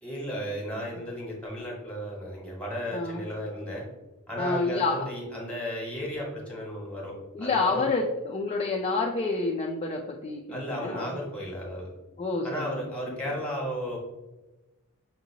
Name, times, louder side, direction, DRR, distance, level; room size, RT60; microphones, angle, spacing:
voice 1, 0.0-3.8 4.3-7.8 10.5-11.9 12.4-14.0, equal, 5° left, -3 dB, 1.2 m, -34 dB
voice 2, 2.9-3.2 4.4-4.9 7.3-11.2 12.2-12.8, left 3 dB, 30° left, -1 dB, 0.3 m, -28 dB
5.9 x 2.7 x 2.8 m, 1.1 s
head